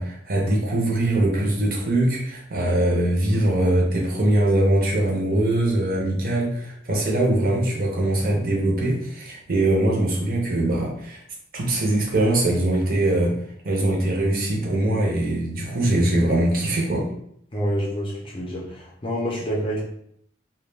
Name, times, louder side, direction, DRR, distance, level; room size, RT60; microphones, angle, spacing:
voice 1, 0.0-11.2 11.5-13.3 13.6-17.1, right 1 dB, 50° right, -2 dB, 0.6 m, -22 dB
voice 2, 17.5-19.8, equal, 30° left, -3 dB, 0.5 m, -27 dB
2.2 x 2.1 x 3.2 m, 0.70 s
head